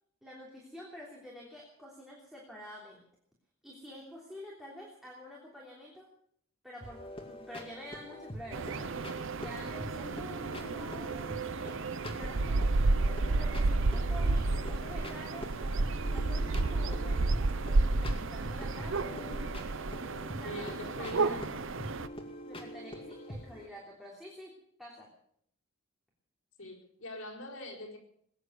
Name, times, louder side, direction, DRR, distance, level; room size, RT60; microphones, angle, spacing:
voice 1, 0.2-3.0 3.6-6.1 6.6-8.9 9.3-12.7 13.2-19.5 20.3-21.4 22.4-25.1, equal, ahead, -4 dB, 3.2 m, -49 dB
sound 1, 6.8-23.7, equal, 25° left, 2.4 m, -45 dB
sound 2, 8.5-22.1, right 3 dB, 65° right, 0.7 m, -31 dB
voice 2, 19.1-19.6 20.4-21.6 26.6-28.0, left 1 dB, 75° left, -2 dB, 4.4 m, -43 dB
20.5 x 9.9 x 6.8 m, 0.68 s
head